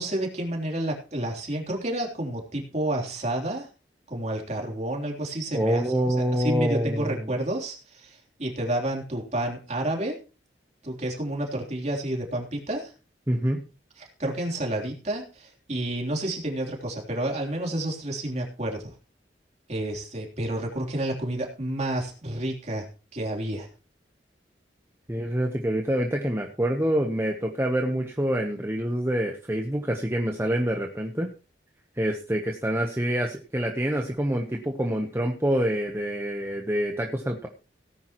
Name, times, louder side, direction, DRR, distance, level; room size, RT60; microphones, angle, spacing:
voice 1, 0.0-3.7 4.1-10.2 10.8-12.9 14.0-18.9 19.7-22.9 23.1-23.7, right 1 dB, 40° right, 0 dB, 3.4 m, -30 dB
voice 2, 5.5-7.3 13.3-13.6 25.1-31.3 31.9-37.5, equal, 15° right, 2 dB, 1.0 m, -26 dB
17.5 x 10.5 x 3.0 m, 0.34 s
head